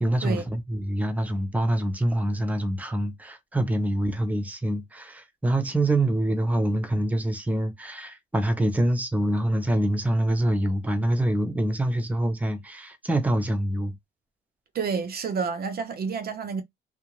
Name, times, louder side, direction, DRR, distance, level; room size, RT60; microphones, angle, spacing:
voice 1, 0.0-13.9, right 1 dB, 5° right, 0.6 m, -25 dB
voice 2, 14.7-16.6, right 5 dB, 50° right, 0.5 m, -29 dB
2.4 x 2.0 x 3.0 m
cardioid pair, 90°, 20 cm